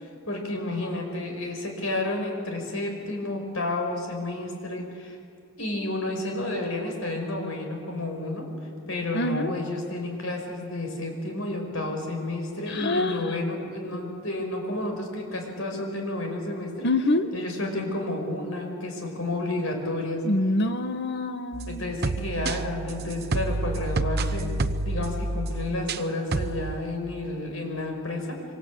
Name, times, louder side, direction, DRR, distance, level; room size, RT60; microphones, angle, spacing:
voice 1, 0.2-5.2 5.6-8.5 8.9-16.9 17.3-20.2 21.7-24.5 24.9-28.4, left 2 dB, 70° left, 3 dB, 5.8 m, -31 dB
voice 2, 9.1-9.5 12.7-13.3 16.8-17.3 20.2-21.9, left 2 dB, 55° left, 9 dB, 1.3 m, -26 dB
sound 1, 21.5-26.0 26.3-26.7, right 2 dB, 50° right, 0.8 m, -29 dB
26.5 x 25.0 x 8.6 m, 2.4 s
head